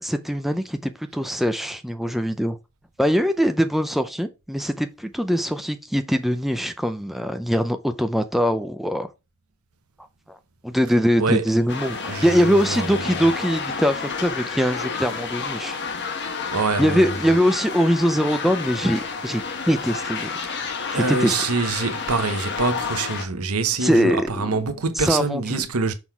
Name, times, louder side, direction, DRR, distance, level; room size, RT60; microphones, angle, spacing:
voice 1, 0.0-2.6 3.0-9.1 10.3-10.4 10.6-15.7 16.8-20.4 20.9-21.3 23.8-24.3 25.0-25.6, equal, ahead, 0.5 m, -22 dB
sound 1, 11.7-23.3, left 5 dB, 50° left, 1.0 m, -30 dB
voice 2, 12.1-13.0 16.5-17.2 20.4-25.9, right 3 dB, 75° right, 1.0 m, -25 dB
6.2 x 3.8 x 4.5 m
head